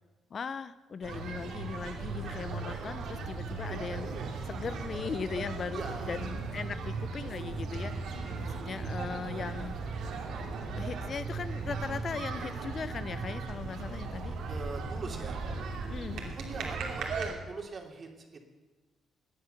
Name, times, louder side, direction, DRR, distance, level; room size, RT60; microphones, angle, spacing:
voice 1, 0.3-4.1 4.5-7.9 8.4-9.8 10.8-14.3 15.9-16.4, left 5 dB, 45° left, 14 dB, 0.7 m, -39 dB
sound 1, 1.0-17.3, right 4 dB, 80° right, 2.9 m, -37 dB
voice 2, 5.7-6.2 14.5-15.4 16.3-18.5, right 3 dB, 40° right, 3 dB, 3.0 m, -41 dB
17.5 x 9.9 x 6.7 m, 1.3 s
cardioid pair, 90°, 0 cm